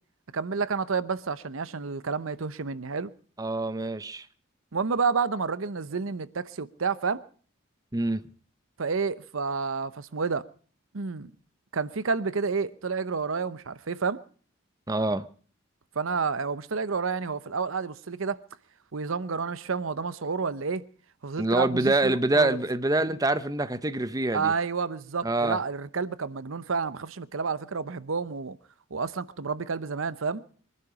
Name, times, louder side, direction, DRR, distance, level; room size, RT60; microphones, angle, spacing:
voice 1, 0.3-3.1 4.7-7.2 8.8-10.5 10.9-11.3 11.7-14.2 15.9-18.4 18.9-20.9 21.2-22.6 24.3-28.6 28.9-30.4, right 5 dB, 80° right, 0.8 m, -30 dB
voice 2, 3.4-4.3 7.9-8.2 14.9-15.3 21.4-24.5 25.2-25.6, right 2 dB, 15° right, 0.7 m, -25 dB
24.0 x 11.0 x 4.8 m
head